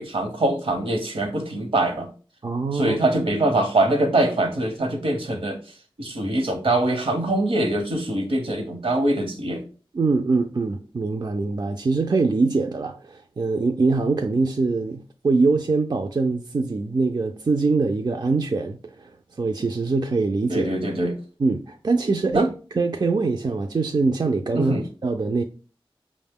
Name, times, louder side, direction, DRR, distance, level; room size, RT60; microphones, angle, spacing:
voice 1, 0.0-2.1 2.7-5.6 6.0-9.6 20.5-21.2 22.3-22.5 24.5-24.8, right 1 dB, 75° right, 0.9 m, -23 dB
voice 2, 2.4-3.0 9.9-20.7 21.4-24.7 25.0-25.4, right 3 dB, 45° right, 0.3 m, -23 dB
5.2 x 2.1 x 3.5 m
wide cardioid pair, 45°, 10 cm